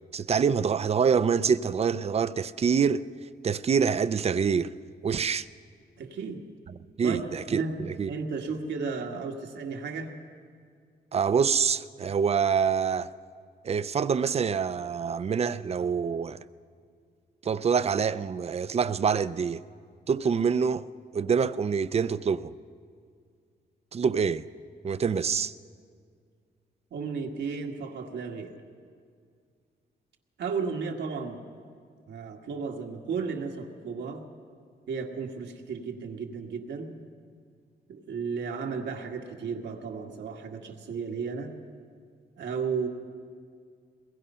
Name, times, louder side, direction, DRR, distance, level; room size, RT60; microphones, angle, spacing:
voice 1, 0.1-3.1 3.4-4.7 5.0-5.5 7.0-8.1 11.1-13.1 13.6-16.4 17.4-19.6 20.1-20.9 21.1-22.5 23.9-24.5 24.8-25.5, right 6 dB, 35° right, 0.5 m, -26 dB
voice 2, 6.0-6.4 7.0-7.8 8.1-10.1 26.9-28.6 30.4-31.4 32.1-34.3 34.9-37.0 37.9-41.5 42.4-42.9, right 5 dB, 85° right, 1.8 m, -34 dB
22.0 x 21.0 x 5.6 m
wide cardioid pair, 125°, 18 cm